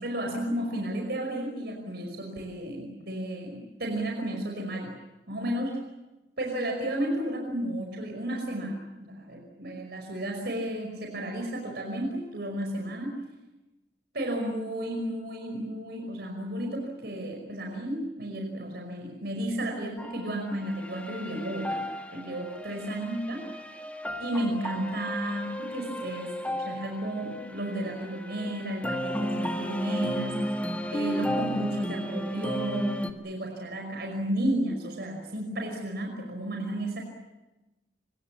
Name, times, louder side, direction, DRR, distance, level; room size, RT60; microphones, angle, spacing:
voice 1, 0.0-5.0 5.3-5.8 6.4-13.2 14.1-21.9 22.1-23.7 24.2-30.4 30.9-37.0, right 1 dB, 65° right, 2 dB, 5.3 m, -33 dB
sound 1, 20.0-33.1, equal, 10° left, 1.9 m, -34 dB
27.0 x 25.0 x 7.4 m, 1.1 s
head